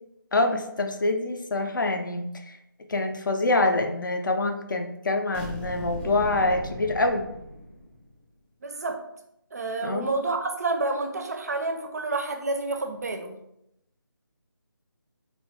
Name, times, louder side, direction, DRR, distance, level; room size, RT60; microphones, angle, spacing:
voice 1, 0.3-2.3 2.9-7.2 9.8-10.1, left 2 dB, 60° left, 5 dB, 0.5 m, -25 dB
sound 1, 5.3-8.1, equal, 25° left, 0.7 m, -37 dB
voice 2, 8.6-9.0 9.5-13.4, right 3 dB, 45° right, 5 dB, 0.4 m, -29 dB
2.8 x 2.6 x 3.4 m, 0.81 s
figure-of-eight pair, 165°, 12 cm